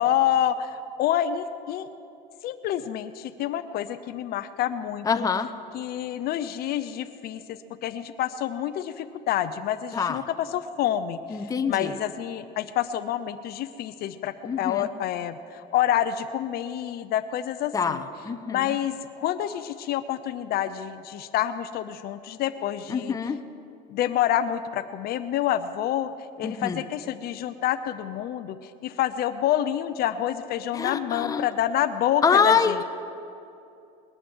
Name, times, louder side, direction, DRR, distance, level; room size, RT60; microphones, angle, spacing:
voice 1, 0.0-1.9 2.4-5.2 5.7-10.2 10.5-11.2 11.7-18.0 18.5-23.1 23.9-26.1 26.4-28.6 28.8-32.8, left 11 dB, 50° left, 12 dB, 0.6 m, -28 dB
voice 2, 5.0-5.5 9.9-10.2 11.3-11.9 14.4-14.9 17.7-18.8 22.9-23.4 26.4-26.8 30.7-31.5 32.2-32.8, left 6 dB, 15° left, 7 dB, 0.7 m, -25 dB
21.0 x 10.0 x 6.2 m, 2.6 s
cardioid pair, 130°, 20 cm